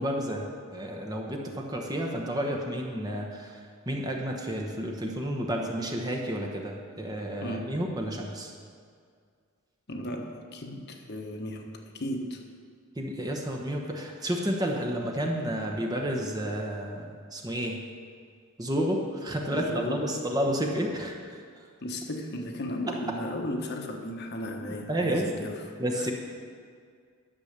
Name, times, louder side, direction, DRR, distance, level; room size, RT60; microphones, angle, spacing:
voice 1, 0.0-3.6 3.9-8.5 13.0-17.8 18.6-21.1 24.9-25.3 25.8-26.1, equal, 20° right, 0 dB, 1.0 m, -31 dB
voice 2, 7.4-7.9 9.9-12.4 19.5-20.1 21.8-26.1, left 1 dB, 50° left, 3 dB, 1.2 m, -35 dB
11.5 x 7.2 x 6.7 m, 2.1 s
head